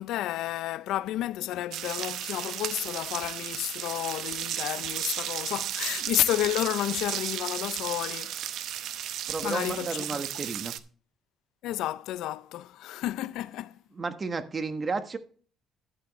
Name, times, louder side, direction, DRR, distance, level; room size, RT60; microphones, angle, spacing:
voice 1, 0.0-8.4 9.4-10.0 11.6-13.8, left 14 dB, 85° left, 0.4 m, -31 dB
sound 1, 1.7-10.8, right 11 dB, 80° right, 0.8 m, -34 dB
voice 2, 9.3-10.7 13.9-15.2, right 4 dB, 35° right, 1.3 m, -32 dB
12.0 x 8.6 x 3.1 m
cardioid pair, 100°, 0 cm